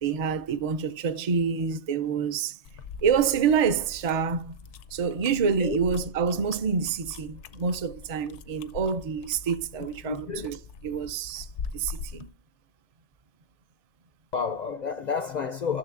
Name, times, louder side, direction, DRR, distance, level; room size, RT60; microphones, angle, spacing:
voice 1, 0.0-2.6 3.0-4.6 4.9-10.6 10.8-11.5 11.7-12.3, right 6 dB, 45° right, 0.5 m, -27 dB
sound 1, 2.6-12.3, left 5 dB, 85° left, 0.9 m, -42 dB
voice 2, 10.0-10.5 14.3-15.8, left 6 dB, 55° left, 0.5 m, -30 dB
13.5 x 6.5 x 2.5 m
omnidirectional pair, 1.2 m